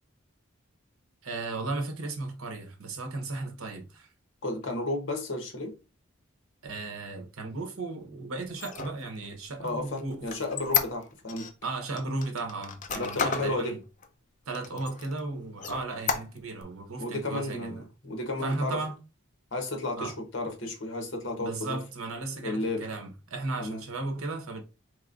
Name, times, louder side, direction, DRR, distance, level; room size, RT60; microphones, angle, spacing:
voice 1, 1.2-4.1 6.6-10.3 11.6-13.8 14.5-17.8 18.4-19.0 20.0-20.1 21.4-24.6, right 3 dB, 85° right, 0.9 m, -35 dB
voice 2, 4.4-5.7 9.6-11.5 12.9-13.8 17.0-18.8 19.5-21.8 22.4-22.9 23.6-23.8, left 2 dB, 60° left, 1.0 m, -33 dB
Squeak, 8.5-11.5 12.0-13.6 14.0-14.1 14.5-15.2 15.6-16.6, left 7 dB, 35° left, 0.4 m, -32 dB
4.0 x 3.2 x 2.5 m
head